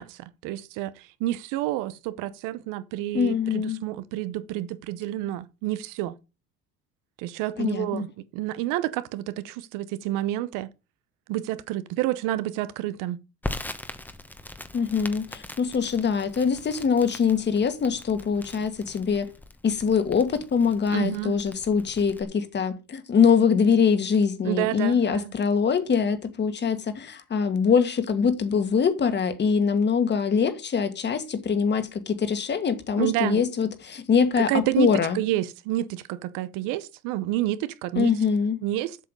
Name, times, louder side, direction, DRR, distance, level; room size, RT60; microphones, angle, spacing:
voice 1, 0.0-6.2 7.2-10.7 11.3-13.2 20.9-21.4 24.4-25.3 33.0-33.4 34.4-38.1 38.6-39.0, right 15 dB, 90° right, 0.9 m, -29 dB
voice 2, 3.1-3.8 7.6-8.0 14.7-19.3 19.6-35.2 38.0-38.6, left 6 dB, 35° left, 1.9 m, -23 dB
Crackle, 13.4-22.2, left 2 dB, 5° left, 1.1 m, -41 dB
7.9 x 6.7 x 6.7 m
cardioid pair, 120°, 31 cm